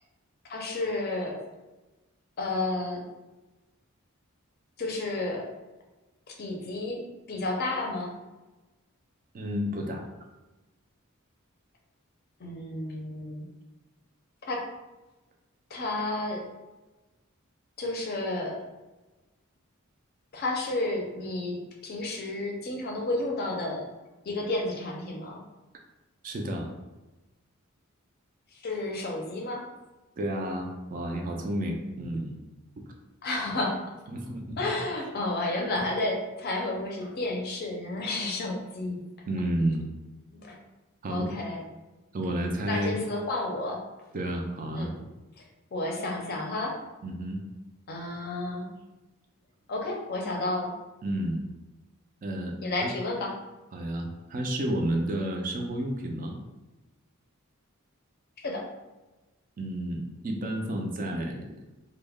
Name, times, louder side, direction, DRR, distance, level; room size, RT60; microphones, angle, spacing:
voice 1, 0.5-1.4 2.4-3.0 4.8-5.5 6.4-7.0 7.3-8.1 12.4-13.5 14.4-14.7 15.7-16.4 17.8-18.6 20.3-21.6 21.8-23.8 24.2-25.4 28.6-29.6 33.2-33.8 34.6-39.0 40.3-40.6 41.1-41.6 42.7-43.8 44.8-44.9 45.7-46.7 47.9-48.7 49.7-50.7 52.6-53.3 58.4-58.7, left 2 dB, 50° left, 0 dB, 0.5 m, -31 dB
voice 2, 9.3-10.1 26.2-26.7 30.2-32.4 34.1-34.6 39.3-39.8 41.0-41.3 42.1-43.0 44.1-44.9 47.0-47.4 51.0-51.4 52.2-52.9 53.7-56.4 59.6-61.5, right 1 dB, 40° right, 2 dB, 0.4 m, -31 dB
2.2 x 2.1 x 3.3 m, 1.1 s
head